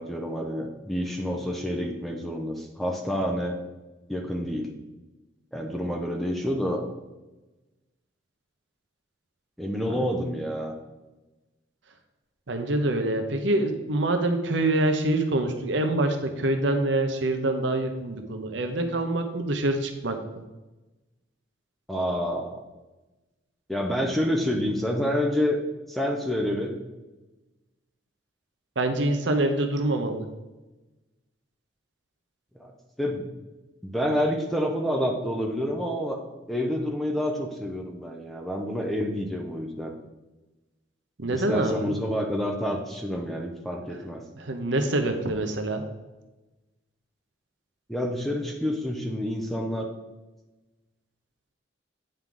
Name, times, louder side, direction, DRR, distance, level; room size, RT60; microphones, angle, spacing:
voice 1, 0.0-3.6 4.1-4.7 5.5-6.9 9.6-10.7 21.9-22.6 23.7-25.6 25.9-26.8 32.5-32.7 33.0-33.3 33.8-36.2 36.5-39.9 41.3-44.2 47.9-49.9, equal, ahead, 1 dB, 0.7 m, -28 dB
voice 2, 12.5-20.4 28.8-30.3 41.2-41.9 44.4-45.8, right 2 dB, 70° right, 6 dB, 0.8 m, -25 dB
9.0 x 4.8 x 3.9 m, 1.1 s
head